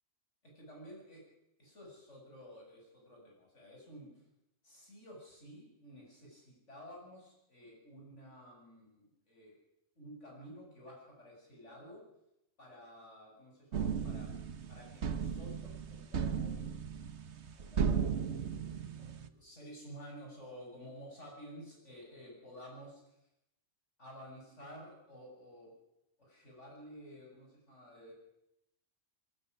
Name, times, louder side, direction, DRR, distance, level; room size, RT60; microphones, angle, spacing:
voice 1, 0.4-1.2 1.6-4.2 4.6-9.5 10.0-12.0 12.6-14.3 14.7-16.7 17.5-23.2 24.0-25.7 26.2-28.1, equal, 70° left, -1 dB, 8.5 m, -52 dB
sound 1, 13.7-19.3, right 6 dB, 65° right, 1.4 m, -36 dB
23.0 x 14.0 x 10.0 m, 0.84 s
omnidirectional pair, 1.3 m